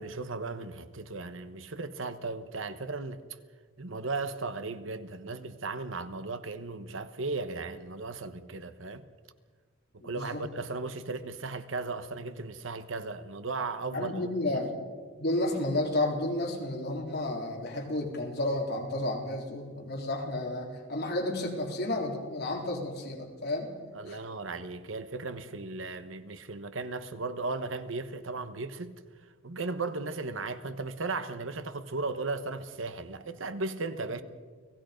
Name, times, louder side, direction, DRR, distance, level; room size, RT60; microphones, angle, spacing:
voice 1, 0.0-3.2 3.8-9.1 10.0-14.1 23.9-29.0 29.4-34.2, right 3 dB, 70° right, 1.1 m, -36 dB
voice 2, 10.0-10.4 13.9-14.7 15.2-23.7 24.0-24.2, left 1 dB, 50° left, 3.8 m, -32 dB
30.0 x 18.0 x 5.2 m
head